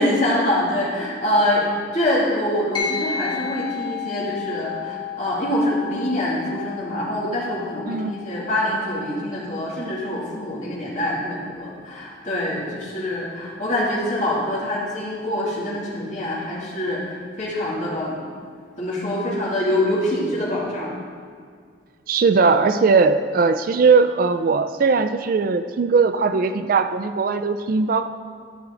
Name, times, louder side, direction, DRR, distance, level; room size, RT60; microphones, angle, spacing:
voice 1, 0.0-18.2 18.8-20.9, left 1 dB, 40° left, -7 dB, 2.5 m, -25 dB
sound 1, 2.7-12.5, left 7 dB, 25° left, 1.5 m, -34 dB
voice 2, 22.1-28.1, right 4 dB, 50° right, 10 dB, 0.3 m, -19 dB
12.5 x 6.1 x 3.8 m, 2.1 s
head